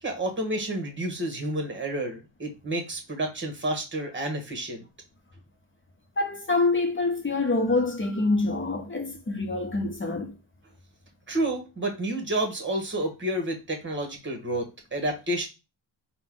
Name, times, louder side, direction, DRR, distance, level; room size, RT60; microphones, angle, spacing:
voice 1, 0.0-4.8 11.3-15.5, right 1 dB, 25° right, 1.4 m, -30 dB
voice 2, 6.2-10.3, left 3 dB, 25° left, 0.9 m, -26 dB
4.2 x 2.4 x 3.7 m
cardioid pair, 90°, 47 cm